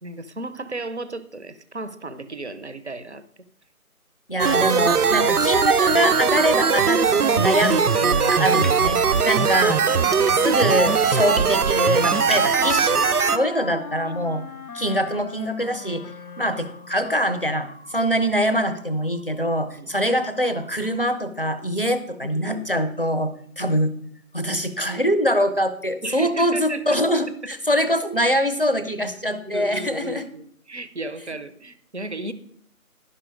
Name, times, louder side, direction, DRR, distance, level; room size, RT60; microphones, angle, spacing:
voice 1, 0.0-3.2 9.4-9.7 14.0-14.5 19.4-19.5 19.8-20.0 22.2-22.6 26.0-27.0 27.4-27.5 29.4-32.3, right 2 dB, 50° right, 13 dB, 0.7 m, -34 dB
voice 2, 4.3-9.8 10.4-14.4 14.7-23.9 24.3-30.3, equal, 40° left, 10 dB, 0.6 m, -24 dB
sound 1, 4.4-13.4, right 6 dB, 85° right, 0.7 m, -20 dB
Drip, 6.8-8.0 8.2-12.0 12.2-13.3, equal, ahead, 0.3 m, -40 dB
sound 2, 9.7-17.0, left 4 dB, 80° left, 0.7 m, -38 dB
11.0 x 5.6 x 5.0 m, 0.66 s
figure-of-eight pair, 175°, 43 cm